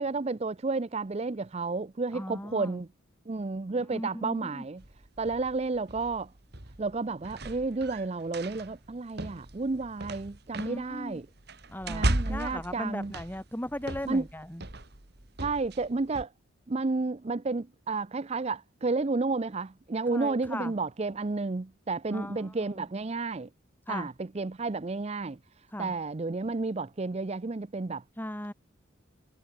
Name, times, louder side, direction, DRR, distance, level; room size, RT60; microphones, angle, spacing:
voice 1, 0.0-2.9 3.3-4.8 5.2-6.3 6.8-11.3 11.9-13.1 14.1-14.3 15.4-16.3 16.7-23.5 23.9-28.0, right 3 dB, 30° right, 0.5 m, -31 dB
voice 2, 2.1-2.8 3.9-4.6 10.6-11.2 11.7-14.6 20.1-20.7 22.1-22.4 23.9-24.1 25.7-25.9 28.2-28.5, left 1 dB, 10° left, 3.2 m, -37 dB
sound 1, 4.8-16.2, right 1 dB, 55° right, 2.5 m, -37 dB
head